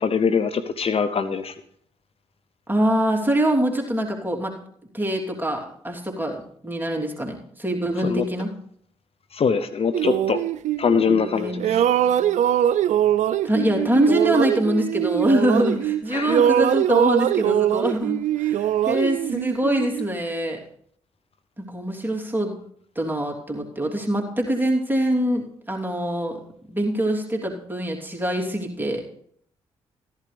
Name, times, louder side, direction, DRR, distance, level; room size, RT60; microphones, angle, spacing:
voice 1, 0.0-1.5 8.0-8.3 9.3-10.4 10.8-11.8 16.1-16.4, left 6 dB, 50° left, 11 dB, 0.7 m, -23 dB
voice 2, 2.7-4.5 4.9-8.5 11.1-12.3 13.4-20.6 21.6-22.5 22.9-26.4 26.7-29.0, right 1 dB, 15° right, 0 dB, 3.2 m, -24 dB
sound 1, 9.9-11.3 11.6-16.0 16.3-20.1, right 11 dB, 70° right, 0.5 m, -22 dB
14.5 x 11.0 x 3.4 m, 0.64 s
supercardioid pair, 50°, 13 cm